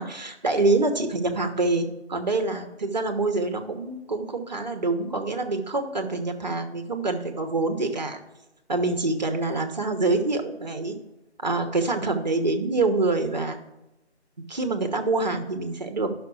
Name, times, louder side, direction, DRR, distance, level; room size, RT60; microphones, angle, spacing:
voice 1, 0.0-8.2 8.7-11.0 11.4-13.6 14.5-16.2, right 3 dB, 40° right, 6 dB, 1.1 m, -26 dB
11.0 x 6.0 x 4.8 m, 0.97 s
figure-of-eight pair, 160°, 34 cm